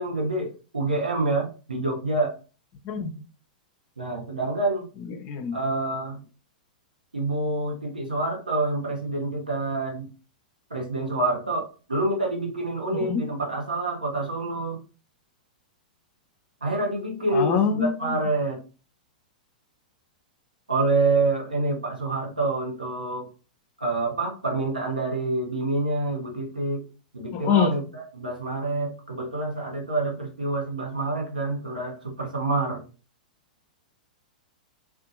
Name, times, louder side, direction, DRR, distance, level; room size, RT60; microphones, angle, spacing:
voice 1, 0.0-2.3 4.0-4.9 5.5-6.2 7.1-10.1 10.7-14.8 16.6-18.6 20.7-23.3 23.8-26.8 27.1-32.8, right 2 dB, 90° right, 1 dB, 0.9 m, -27 dB
voice 2, 5.2-5.6 12.9-13.2 17.3-18.2 27.3-27.7, left 6 dB, 40° left, 7 dB, 0.5 m, -24 dB
2.6 x 2.3 x 2.4 m, 0.35 s
figure-of-eight pair, 105°, 4 cm